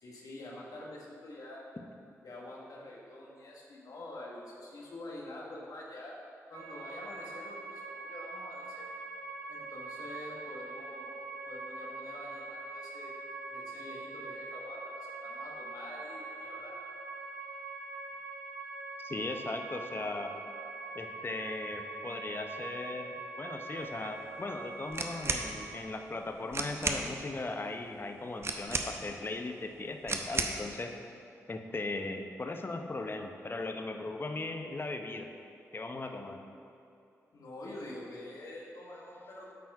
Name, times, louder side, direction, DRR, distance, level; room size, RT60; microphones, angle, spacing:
voice 1, 0.0-1.6 2.2-6.1 6.5-8.9 9.5-11.1 11.4-13.1 13.5-16.7 37.3-39.5, left 1 dB, 70° left, -4 dB, 1.4 m, -46 dB
sound 1, 6.5-25.8, right 3 dB, 80° right, 1.1 m, -43 dB
voice 2, 19.0-20.3 20.9-30.9 31.5-35.3 35.7-36.4, left 2 dB, 35° left, 4 dB, 0.8 m, -38 dB
sound 2, 24.9-25.5 26.2-26.3 26.5-27.1 28.4-29.2 30.1-30.6, right 3 dB, 40° right, 0.7 m, -33 dB
8.3 x 4.2 x 4.7 m, 2.7 s
supercardioid pair, 45°, 6 cm